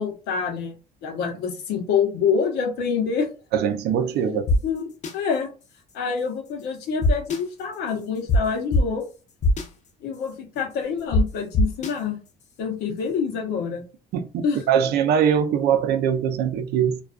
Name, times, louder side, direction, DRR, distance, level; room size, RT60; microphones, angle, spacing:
voice 1, 0.0-3.3 4.2-5.5 5.9-9.0 10.0-12.2 12.6-13.8 14.4-14.6, left 6 dB, 80° left, 0.8 m, -26 dB
voice 2, 3.5-4.4 14.1-17.0, right 8 dB, 75° right, 0.5 m, -22 dB
sound 1, 4.5-4.6 5.0-5.1 7.0-7.4 8.3-8.4 8.7-8.8 9.4-9.6 11.1-11.2 11.5-11.9, left 1 dB, 45° left, 0.6 m, -18 dB
2.4 x 2.3 x 2.3 m
cardioid pair, 110°, 17 cm